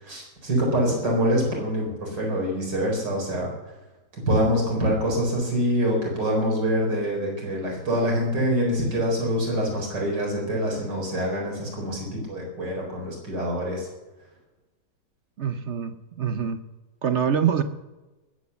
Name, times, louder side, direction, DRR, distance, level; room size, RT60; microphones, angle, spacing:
voice 1, 0.0-3.5 4.1-13.9, equal, 75° right, -1 dB, 4.8 m, -25 dB
voice 2, 15.4-16.6 17.0-17.6, right 8 dB, 60° right, 10 dB, 0.8 m, -25 dB
19.5 x 8.2 x 6.9 m, 1.1 s
omnidirectional pair, 1.9 m